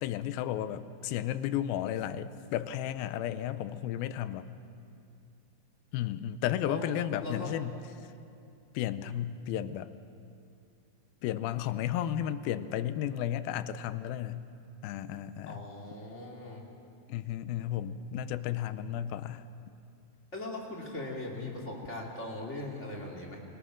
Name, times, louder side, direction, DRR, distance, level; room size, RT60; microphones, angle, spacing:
voice 1, 0.0-4.5 5.9-7.7 8.7-9.9 11.2-14.5 14.8-15.6 17.1-19.5, left 11 dB, 85° left, 13 dB, 2.5 m, -33 dB
voice 2, 7.2-7.6 15.5-16.6 20.3-23.4, left 2 dB, 20° left, -1 dB, 2.4 m, -39 dB
28.5 x 18.5 x 6.3 m, 2.5 s
omnidirectional pair, 4.2 m